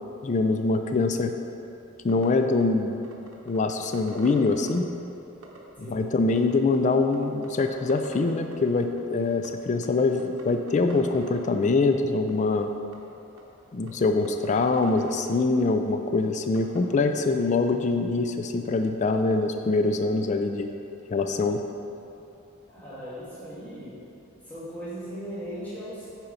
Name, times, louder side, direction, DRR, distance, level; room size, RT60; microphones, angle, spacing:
voice 1, 0.2-1.3 2.0-3.0 3.5-4.9 5.8-12.7 13.7-20.7 21.1-21.6, left 3 dB, 35° left, 6 dB, 0.3 m, -24 dB
sound 1, 2.1-2.3 2.6-2.7 3.0-4.8 5.4-5.6 6.3-6.8 7.1-7.2 7.4-8.7 9.0-9.1 9.3-9.5 9.8-9.9 10.2-11.5 12.3-12.4 12.9-13.0 13.4-13.5 13.9-14.0 14.2-15.2 16.5-16.8, right 2 dB, 80° right, 1.1 m, -44 dB
voice 2, 22.7-24.0 24.5-26.1, equal, 10° left, -12 dB, 1.7 m, -38 dB
8.7 x 4.5 x 5.4 m, 2.8 s
head